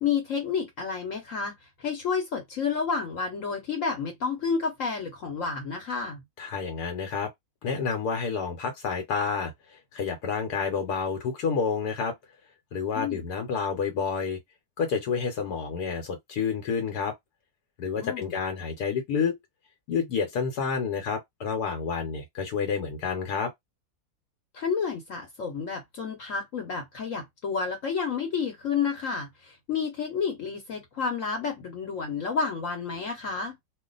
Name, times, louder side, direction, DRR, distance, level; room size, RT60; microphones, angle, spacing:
voice 1, 0.0-6.2 12.9-13.2 18.0-18.3 24.5-33.6, left 5 dB, 60° left, 1.2 m, -30 dB
voice 2, 6.4-7.3 7.6-12.1 12.7-14.4 14.8-17.1 17.8-19.4 19.9-23.5, left 5 dB, 80° left, 1.3 m, -29 dB
2.6 x 2.4 x 3.8 m
omnidirectional pair, 1.7 m